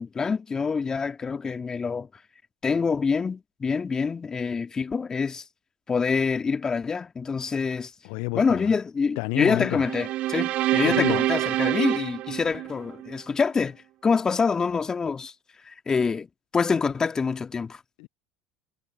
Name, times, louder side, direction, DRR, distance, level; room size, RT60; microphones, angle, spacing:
voice 1, 0.0-2.1 2.6-5.4 5.9-7.9 8.3-15.3 15.6-16.3 16.5-17.8, left 5 dB, 25° left, 2.2 m, -26 dB
voice 2, 8.0-8.8 9.2-9.8 10.8-11.2 18.0-18.1, left 31 dB, 65° left, 0.7 m, -29 dB
sound 1, 9.8-13.2, right 15 dB, 50° right, 0.5 m, -26 dB
hypercardioid pair, 70°, 2 cm